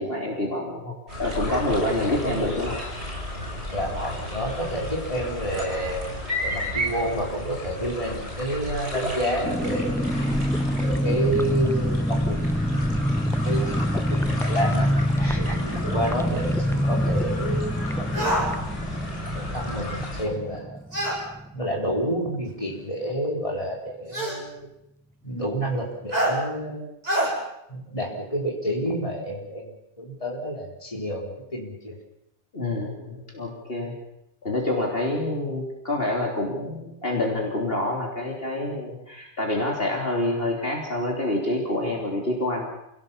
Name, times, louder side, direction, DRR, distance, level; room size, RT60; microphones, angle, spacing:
voice 1, 0.0-2.8 32.5-33.9 34.4-42.7, left 1 dB, 55° left, 0 dB, 3.6 m, -27 dB
sound 1, 1.1-20.2, left 1 dB, 65° right, 7.3 m, -33 dB
voice 2, 2.0-2.5 3.7-6.1 6.4-10.2 10.8-12.4 12.7-13.0 13.4-14.9 15.2-18.7 19.3-20.8 21.5-24.7 25.2-26.9 27.7-29.7 30.0-32.0, equal, 30° left, -1 dB, 4.5 m, -29 dB
sound 2, 9.4-21.8 22.1-22.2 22.4-22.7, equal, 5° left, 0.6 m, -26 dB
sound 3, 18.1-18.5 20.9-21.2 22.5-22.6 24.1-24.4 26.1-26.4 27.0-27.3, right 1 dB, 35° right, 5.8 m, -24 dB
28.0 x 17.0 x 7.3 m, 0.82 s
omnidirectional pair, 1.2 m